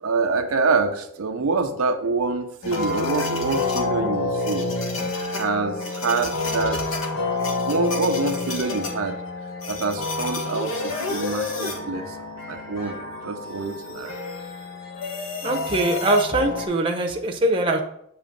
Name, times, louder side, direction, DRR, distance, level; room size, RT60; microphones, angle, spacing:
voice 1, 0.0-4.7 5.3-6.8 7.7-9.2 9.7-13.0 13.2-14.2, right 4 dB, 85° right, 6 dB, 0.6 m, -26 dB
sound 1, 2.6-16.7, left 3 dB, 70° left, 1.1 m, -28 dB
voice 2, 15.4-17.8, right 2 dB, 25° right, 1 dB, 0.7 m, -22 dB
7.7 x 3.0 x 5.0 m, 0.73 s
head